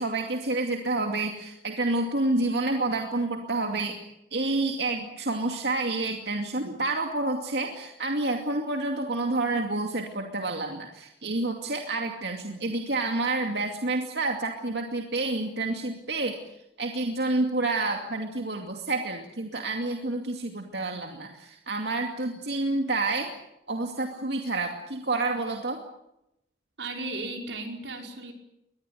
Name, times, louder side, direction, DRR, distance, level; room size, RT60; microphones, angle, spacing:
voice 1, 0.0-4.0 4.3-16.4 16.8-23.3 23.7-25.8, right 2 dB, 65° right, 3 dB, 2.5 m, -29 dB
voice 2, 26.8-28.3, right 2 dB, 90° right, 3 dB, 5.1 m, -35 dB
23.0 x 20.5 x 9.3 m, 0.84 s
head